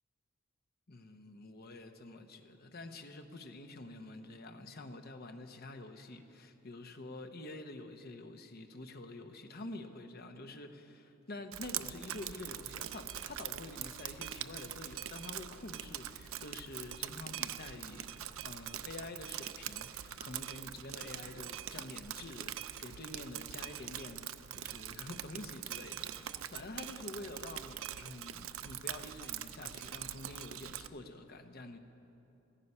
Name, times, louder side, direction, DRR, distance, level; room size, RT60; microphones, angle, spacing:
voice 1, 0.9-31.8, left 2 dB, 50° left, 6 dB, 0.9 m, -47 dB
Drip, 11.5-30.9, right 11 dB, 80° right, 0.5 m, -43 dB
15.5 x 14.0 x 5.6 m, 2.9 s
head